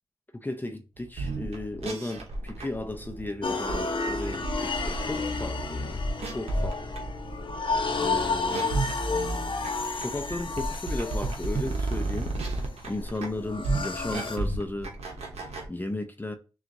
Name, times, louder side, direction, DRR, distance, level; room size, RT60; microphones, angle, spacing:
voice 1, 0.3-6.8 7.9-8.7 9.9-12.4 12.9-14.9 15.7-16.3, left 2 dB, 20° left, 0.6 m, -35 dB
sound 1, 1.1-15.7, right 2 dB, 85° right, 0.9 m, -33 dB
sound 2, 3.4-14.4, left 4 dB, 55° left, 0.8 m, -32 dB
5.9 x 2.4 x 2.6 m
cardioid pair, 50°, 11 cm